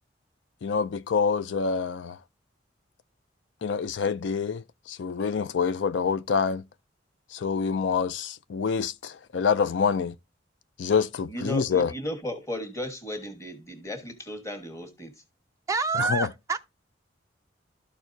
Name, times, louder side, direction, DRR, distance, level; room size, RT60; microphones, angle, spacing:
voice 1, 0.6-2.2 3.6-6.6 7.3-10.1 10.8-11.9 16.0-16.3, left 5 dB, 75° left, 0.4 m, -26 dB
voice 2, 11.3-15.1, left 1 dB, 15° left, 1.3 m, -35 dB
voice 3, 15.7-16.6, right 4 dB, 15° right, 0.3 m, -27 dB
12.5 x 4.5 x 2.6 m
head